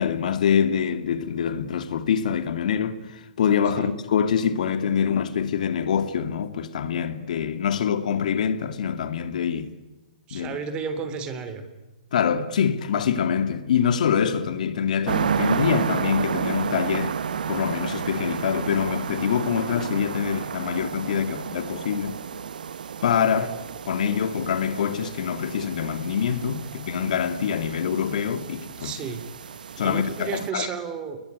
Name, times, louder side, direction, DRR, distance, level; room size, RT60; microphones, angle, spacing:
voice 1, 0.0-9.7 10.3-10.6 12.1-17.2 17.5-22.2 23.0-23.5 23.9-29.1 29.8-30.7, left 7 dB, 65° left, 2.4 m, -25 dB
voice 2, 10.3-11.6 21.3-21.4 21.7-21.8 23.4-23.5 28.8-29.2 29.8-31.2, right 6 dB, 20° right, 3.3 m, -32 dB
sound 1, 15.1-30.5, right 7 dB, 80° right, 1.1 m, -31 dB
29.0 x 21.5 x 9.5 m
hypercardioid pair, 155°, 4 cm